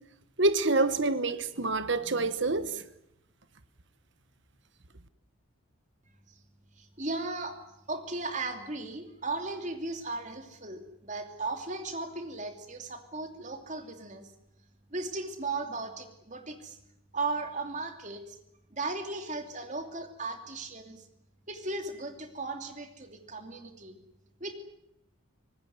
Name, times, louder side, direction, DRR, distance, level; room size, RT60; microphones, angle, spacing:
voice 1, 0.4-2.8, right 2 dB, 55° right, 1.2 m, -27 dB
voice 2, 6.8-7.6 7.9-14.3 14.9-16.8 17.1-18.4 18.7-21.1 21.5-24.0 24.4-24.5, right 3 dB, 35° right, 2.8 m, -36 dB
25.0 x 19.0 x 9.6 m
head